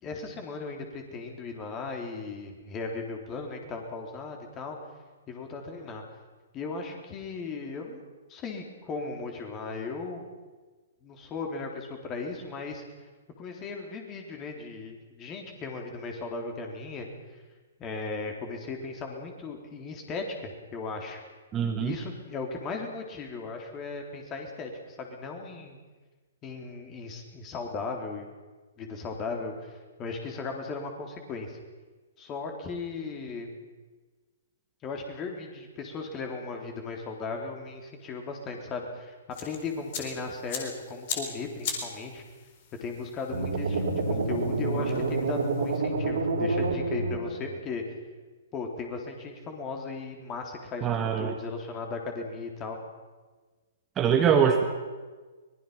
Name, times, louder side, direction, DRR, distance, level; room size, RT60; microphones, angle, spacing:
voice 1, 0.0-4.8 5.3-6.0 6.5-8.0 8.3-10.2 11.0-12.8 13.4-17.1 17.8-21.2 21.8-25.8 26.4-28.3 28.8-31.6 32.2-33.5 34.8-39.1 39.4-42.2 42.8-47.8 48.5-52.8, left 4 dB, 25° left, 3 dB, 3.7 m, -37 dB
voice 2, 21.5-22.0 50.8-51.3 54.0-54.6, right 7 dB, 20° right, 4 dB, 1.8 m, -23 dB
sound 1, 39.3-45.8, left 6 dB, 40° left, 4.2 m, -40 dB
sound 2, 43.3-47.6, right 3 dB, 60° right, 3.9 m, -28 dB
24.5 x 20.5 x 5.8 m, 1.3 s
figure-of-eight pair, 120°, 0 cm